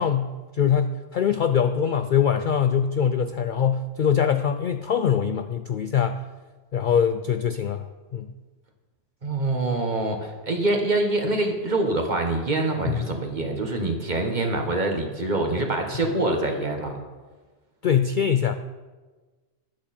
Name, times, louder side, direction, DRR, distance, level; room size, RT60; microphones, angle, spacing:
voice 1, 0.0-6.2 6.7-7.9 8.1-8.3 12.9-13.0 17.8-18.6, left 8 dB, 60° left, 9 dB, 0.5 m, -23 dB
voice 2, 9.2-17.0, right 2 dB, 40° right, 3 dB, 1.5 m, -25 dB
12.5 x 11.0 x 4.3 m, 1.3 s
omnidirectional pair, 1.2 m